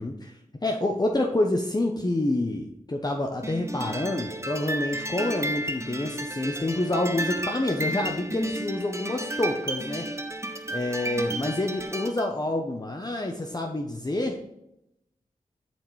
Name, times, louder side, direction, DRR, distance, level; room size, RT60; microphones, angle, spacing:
voice 1, 0.0-10.1 10.7-14.4, left 1 dB, 25° left, 2 dB, 0.8 m, -28 dB
sound 1, 3.4-12.3, right 1 dB, 20° right, 0.8 m, -33 dB
7.3 x 5.7 x 3.2 m, 0.83 s
wide cardioid pair, 55°, 15 cm